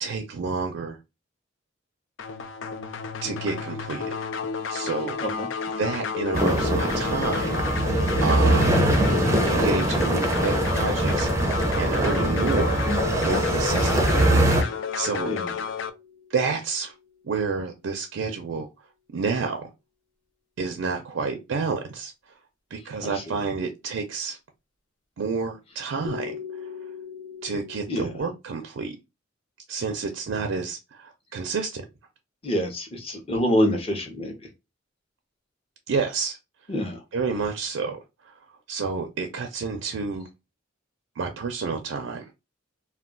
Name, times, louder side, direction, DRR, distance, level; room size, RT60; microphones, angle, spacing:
voice 1, 0.0-1.0 3.2-4.1 4.7-5.2 5.8-7.6 8.2-8.8 9.5-11.3 11.7-14.3 14.6-15.3 16.3-16.9 17.2-18.7 19.1-19.7 20.6-22.1 22.7-24.4 25.2-26.7 27.4-29.0 29.7-31.8 35.9-36.4 37.1-38.0 38.3-38.4 38.7-40.3 41.2-42.3, right 4 dB, 75° right, 0.4 m, -29 dB
sound 1, 2.2-15.9, left 6 dB, 70° left, 0.3 m, -31 dB
sound 2, 6.3-14.6, right 1 dB, 15° right, 0.4 m, -22 dB
sound 3, 13.3-17.4 26.0-28.2, left 7 dB, 85° left, 0.9 m, -41 dB
voice 2, 32.4-34.3 36.7-37.0, equal, 30° left, 0.7 m, -26 dB
2.2 x 2.2 x 3.6 m
head